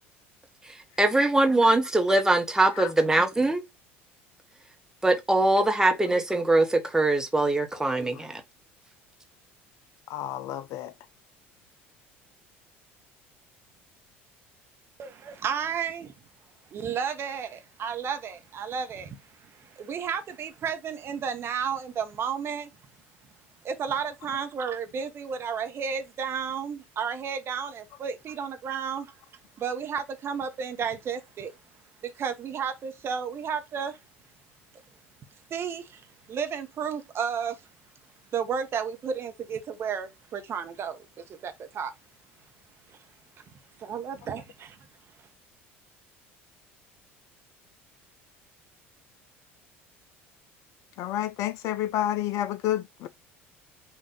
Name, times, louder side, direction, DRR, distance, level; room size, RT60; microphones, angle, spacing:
voice 1, 1.0-3.6 5.0-8.4, right 2 dB, 10° right, 1.0 m, -22 dB
voice 2, 10.1-10.9 51.0-53.1, left 12 dB, 50° left, 0.4 m, -30 dB
voice 3, 15.0-16.1 16.7-22.7 23.6-29.1 29.6-31.5 32.0-34.0 35.5-36.0 36.3-37.6 38.3-41.9 42.9-43.0 43.8-44.8, right 7 dB, 40° right, 0.9 m, -32 dB
5.4 x 2.5 x 3.7 m
figure-of-eight pair, 65°, 7 cm